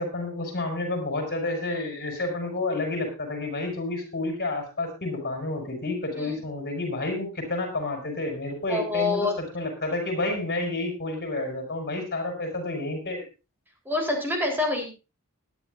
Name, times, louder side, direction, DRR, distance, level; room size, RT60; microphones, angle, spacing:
voice 1, 0.0-9.3 9.5-13.2, left 2 dB, 45° left, 2 dB, 6.1 m, -30 dB
voice 2, 8.7-9.3 13.9-14.9, left 2 dB, 10° right, 0 dB, 4.0 m, -26 dB
20.5 x 11.0 x 2.6 m, 0.30 s
head